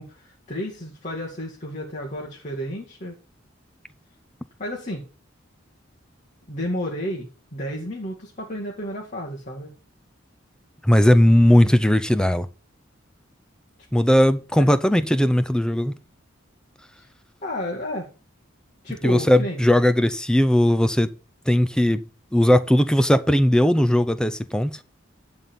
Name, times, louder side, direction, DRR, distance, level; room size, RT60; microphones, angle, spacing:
voice 1, 0.0-3.2 4.6-5.0 6.5-9.7 17.4-18.1 18.8-19.6, equal, 40° left, 2.1 m, -32 dB
voice 2, 10.8-12.5 13.9-15.9 19.0-21.1 21.5-22.0 22.3-24.8, left 1 dB, 5° left, 0.6 m, -18 dB
11.0 x 4.2 x 7.0 m
head